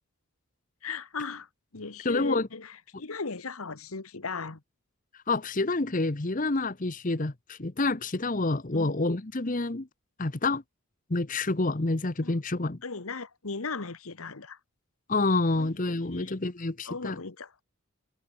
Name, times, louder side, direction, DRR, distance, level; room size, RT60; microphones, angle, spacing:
voice 1, 0.8-1.5 1.7-4.6 8.7-9.0 12.2-12.4 12.8-14.6 15.5-15.7 16.1-16.3 16.8-17.5, left 4 dB, 75° left, 1.3 m, -37 dB
voice 2, 2.0-2.5 5.3-9.9 10.2-10.6 11.1-12.8 15.1-17.2, left 2 dB, 35° left, 1.0 m, -28 dB
head